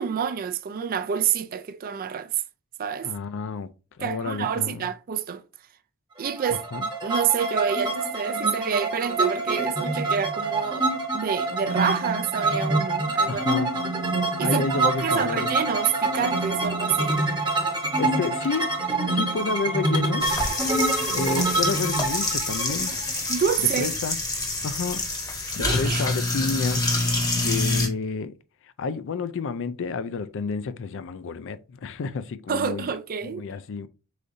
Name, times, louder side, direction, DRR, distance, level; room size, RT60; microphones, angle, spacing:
voice 1, 0.0-2.4 2.8-3.1 4.0-5.4 6.2-6.7 7.0-10.9 11.1-13.4 14.4-17.2 23.3-23.9 25.5-26.1 27.2-27.4 32.5-33.5, right 7 dB, 40° right, 0.4 m, -28 dB
voice 2, 3.0-3.7 4.0-4.9 6.5-6.9 13.2-13.7 14.4-15.5 18.0-18.7 19.1-20.4 21.1-22.9 23.8-24.2 24.6-25.1 25.6-27.0 27.4-28.4 28.6-32.9 33.2-33.9, left 5 dB, 60° left, 0.4 m, -30 dB
sound 1, 6.2-23.9, right 2 dB, 20° right, 0.9 m, -26 dB
sound 2, 20.2-27.9, left 2 dB, 15° left, 0.9 m, -27 dB
4.9 x 3.9 x 2.6 m
head